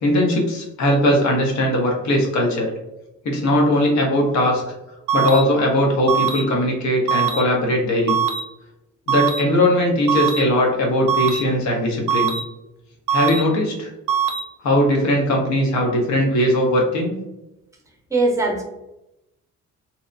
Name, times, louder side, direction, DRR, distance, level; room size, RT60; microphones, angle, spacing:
voice 1, 0.0-2.7 3.2-4.6 5.1-8.2 9.1-12.3 13.1-13.9 14.6-17.1, left 1 dB, 65° left, 0 dB, 0.9 m, -19 dB
sound 1, 5.1-5.4 6.1-6.4 7.1-7.4 8.1-8.4 9.1-9.4 10.1-10.4 11.1-11.4 12.1-12.4 13.1-13.4 14.1-14.4, right 8 dB, 85° right, 0.5 m, -21 dB
voice 2, 18.1-18.6, right 2 dB, 10° right, 1 dB, 0.7 m, -20 dB
2.9 x 2.0 x 2.5 m, 0.92 s
cardioid pair, 90°, 30 cm